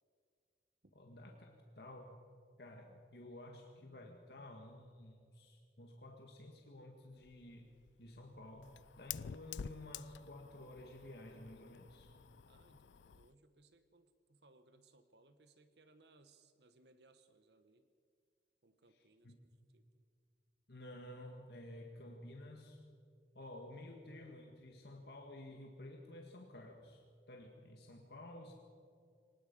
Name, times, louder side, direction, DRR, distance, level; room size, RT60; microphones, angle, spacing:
voice 1, 1.0-2.2 2.6-7.7 8.0-12.1 18.9-19.4 20.7-22.8 23.3-28.5, left 1 dB, 60° left, 1 dB, 1.9 m, -53 dB
Fire, 7.1-13.3, left 8 dB, 85° left, 0.4 m, -50 dB
voice 2, 12.5-17.9 18.6-19.9, right 2 dB, 70° right, 10 dB, 1.2 m, -67 dB
24.5 x 19.5 x 5.4 m, 2.2 s
head